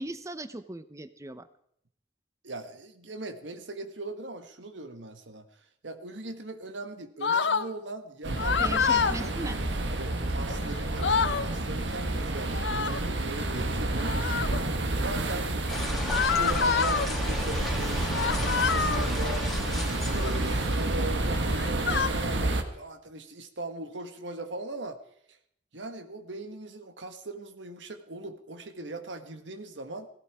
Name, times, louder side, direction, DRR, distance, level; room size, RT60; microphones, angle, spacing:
voice 1, 0.0-1.5 8.6-9.6, right 2 dB, 15° right, 12 dB, 0.7 m, -37 dB
voice 2, 2.4-5.4 5.8-8.8 9.2-9.3 9.9-14.3 15.0-15.5 15.9-19.5 20.1-25.0 25.7-30.1, right 2 dB, 90° right, 8 dB, 1.5 m, -40 dB
sound 1, 7.2-7.7 8.4-9.2 10.5-10.6 10.8-11.5 12.5-13.1 14.0-14.6 16.1-17.1 18.1-19.1 20.0-20.4 21.3-22.1, left 6 dB, 75° left, 0.8 m, -27 dB
sound 2, 8.2-22.6, right 2 dB, 75° right, 1.5 m, -30 dB
sound 3, 15.7-21.1, left 1 dB, ahead, 2.8 m, -34 dB
17.5 x 15.5 x 4.8 m, 0.70 s
head